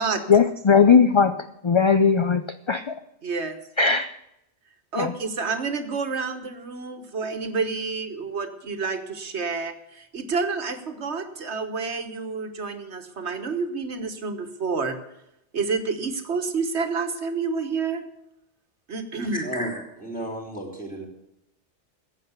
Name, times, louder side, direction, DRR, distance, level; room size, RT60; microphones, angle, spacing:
voice 1, 0.3-3.0 3.8-4.1 5.0-5.1, left 5 dB, 40° left, 10 dB, 0.4 m, -19 dB
voice 2, 3.2-3.6 4.9-15.0 15.5-18.0 18.9-19.5, right 4 dB, 75° right, 8 dB, 1.5 m, -29 dB
voice 3, 19.3-21.1, right 1 dB, 5° left, -1 dB, 3.6 m, -32 dB
14.5 x 8.3 x 8.1 m, 0.83 s
omnidirectional pair, 1.2 m